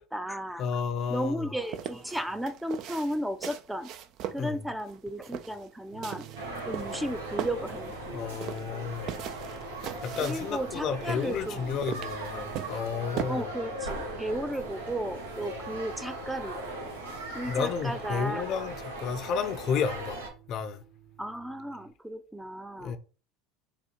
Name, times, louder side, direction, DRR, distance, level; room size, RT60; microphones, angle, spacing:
voice 1, 0.0-0.7 1.1-3.9 4.3-6.3 6.6-8.3 10.2-11.8 13.3-16.9 17.3-18.6 21.2-23.0, right 1 dB, 5° right, 0.5 m, -34 dB
voice 2, 0.6-1.5 4.4-4.6 8.1-9.1 9.8-13.5 17.5-20.8 22.8-23.0, left 6 dB, 50° left, 0.6 m, -32 dB
sound 1, 1.6-13.2, right 10 dB, 55° right, 0.5 m, -39 dB
sound 2, 5.9-21.9, right 11 dB, 70° right, 1.3 m, -51 dB
sound 3, 6.3-20.3, right 1 dB, 90° right, 1.2 m, -39 dB
4.0 x 2.4 x 4.5 m
hypercardioid pair, 80°, 0 cm